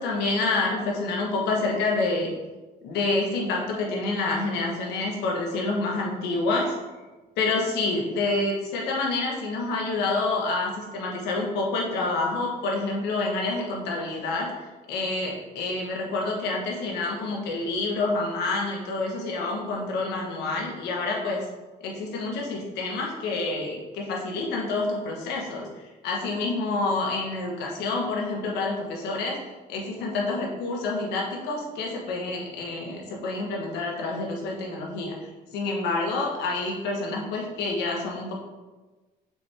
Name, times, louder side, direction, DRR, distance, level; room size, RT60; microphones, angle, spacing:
voice 1, 0.0-2.3 2.8-6.8 7.4-21.5 21.8-29.4 29.7-38.3, left 3 dB, 85° left, -1 dB, 1.5 m, -28 dB
6.1 x 4.4 x 3.6 m, 1.2 s
cardioid pair, 110°, 17 cm